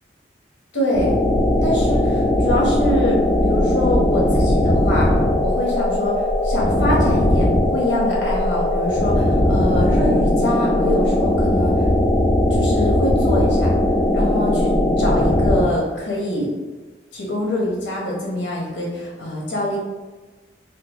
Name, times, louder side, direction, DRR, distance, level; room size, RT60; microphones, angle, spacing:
voice 1, 0.7-1.1 1.6-11.9 12.5-13.7 14.1-14.7 15.0-16.5 17.1-19.8, left 1 dB, 85° left, -4 dB, 0.9 m, -24 dB
sound 1, 0.9-15.6, left 1 dB, 20° left, 0.3 m, -18 dB
3.7 x 2.1 x 3.0 m, 1.2 s
head